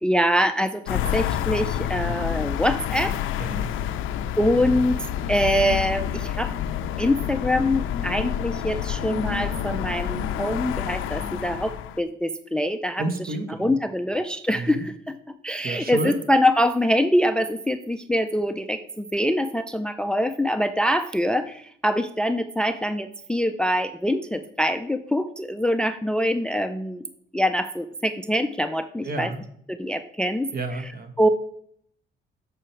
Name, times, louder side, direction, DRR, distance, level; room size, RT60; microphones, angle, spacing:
voice 1, 0.0-3.2 4.4-5.0 5.3-6.5 7.0-13.0 13.6-27.1 27.3-29.3 29.7-30.5 31.2-31.3, equal, 5° left, 11 dB, 0.4 m, -24 dB
sound 1, 0.9-12.0, left 10 dB, 85° left, 0.5 m, -28 dB
voice 2, 13.0-13.8 14.5-14.9 15.6-16.2 29.0-29.4 30.5-31.1, right 2 dB, 50° right, 7 dB, 1.3 m, -30 dB
7.0 x 6.2 x 4.4 m, 0.66 s
cardioid pair, 90°, 20 cm